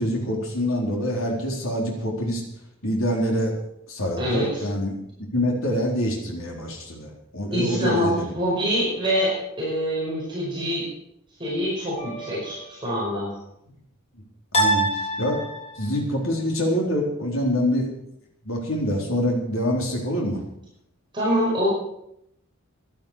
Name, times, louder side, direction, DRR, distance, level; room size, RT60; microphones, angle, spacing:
voice 1, 0.0-2.4 2.8-3.5 3.9-5.0 5.3-8.3 14.5-14.9 15.2-15.4 15.8-17.9 18.5-20.4, equal, 65° left, -1 dB, 4.0 m, -25 dB
voice 2, 4.2-4.6 7.5-10.9 11.4-13.3 21.1-21.7, equal, 20° right, -6 dB, 5.6 m, -25 dB
sound 1, 12.0-12.7 14.5-16.0, right 1 dB, 30° left, 3.9 m, -26 dB
15.5 x 11.0 x 6.4 m, 0.77 s
head